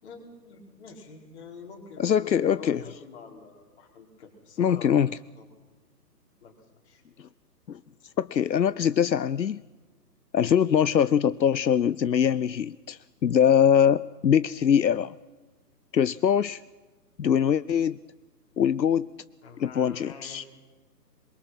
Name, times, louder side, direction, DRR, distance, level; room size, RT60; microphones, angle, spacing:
voice 1, 0.0-4.9 5.4-5.5 6.4-6.5 6.8-7.0 19.4-20.5, left 5 dB, 40° left, 1 dB, 5.1 m, -46 dB
voice 2, 2.0-2.8 4.6-5.2 7.2-7.3 7.7-7.8 8.2-9.6 10.3-15.1 15.9-16.6 17.2-18.0 18.6-19.1 19.6-20.4, left 8 dB, 85° left, 18 dB, 0.7 m, -23 dB
26.0 x 23.0 x 6.0 m, 1.3 s
figure-of-eight pair, 135°, 50 cm